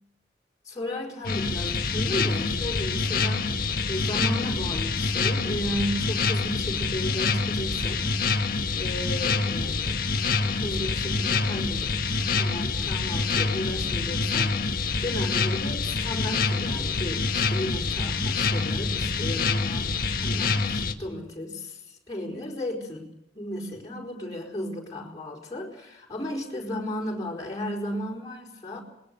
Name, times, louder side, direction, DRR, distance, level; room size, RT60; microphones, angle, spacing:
voice 1, 0.6-10.0 10.4-23.1 23.3-28.8, left 1 dB, 20° left, -2 dB, 4.8 m, -34 dB
sound 1, 1.2-20.9, left 4 dB, 55° left, 1.6 m, -26 dB
27.5 x 20.5 x 6.8 m, 0.80 s
head